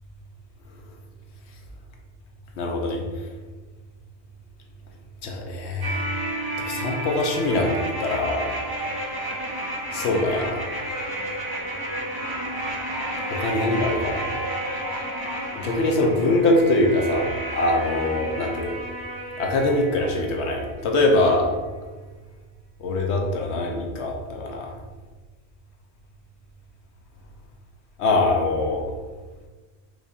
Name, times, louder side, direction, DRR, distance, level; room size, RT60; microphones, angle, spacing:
voice 1, 2.6-3.0 5.2-6.0 6.6-8.5 9.9-10.6 13.3-14.3 15.5-18.7 19.4-21.6 22.8-24.7 28.0-28.8, left 2 dB, 80° left, 1 dB, 0.9 m, -23 dB
sound 1, 5.8-20.8 21.1-21.2, right 1 dB, 35° right, 0.4 m, -31 dB
4.6 x 2.7 x 2.4 m, 1.3 s
omnidirectional pair, 1.1 m